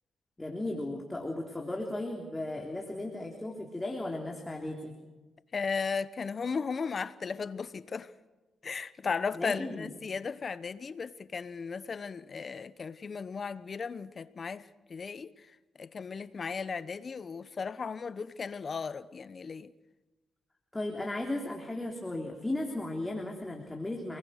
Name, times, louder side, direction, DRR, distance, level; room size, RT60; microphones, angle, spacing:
voice 1, 0.4-4.9 9.3-9.9 20.7-24.2, left 1 dB, 15° left, 3.5 m, -36 dB
voice 2, 5.5-8.1 8.6-15.3 15.8-19.7, left 5 dB, 45° left, 1.0 m, -36 dB
29.0 x 20.5 x 6.5 m
supercardioid pair, 65°, 0 cm